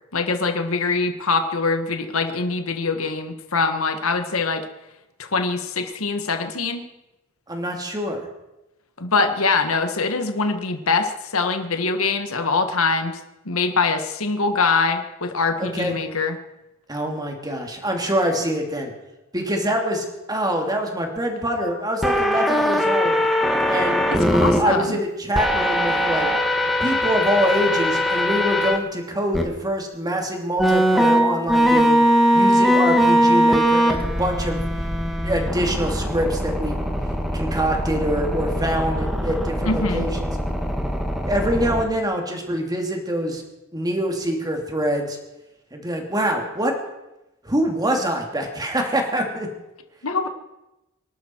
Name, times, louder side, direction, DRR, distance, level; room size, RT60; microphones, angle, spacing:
voice 1, 0.1-4.6 5.2-6.8 9.0-13.2 13.5-16.4 24.1-25.0 39.6-40.1 50.0-50.3, left 4 dB, 75° left, 7 dB, 1.6 m, -23 dB
voice 2, 7.5-8.2 15.6-16.0 16.9-18.9 19.3-23.2 23.6-24.0 24.6-26.3 26.6-32.0 32.3-34.6 35.2-36.8 37.3-40.3 41.3-43.4 43.7-45.2 45.7-46.7 47.4-49.5, equal, 20° right, 2 dB, 2.8 m, -25 dB
sound 1, 22.0-24.6 25.3-28.8 29.3-29.4 30.6-41.8, equal, ahead, 1.8 m, -21 dB
24.5 x 12.0 x 4.7 m, 0.96 s
head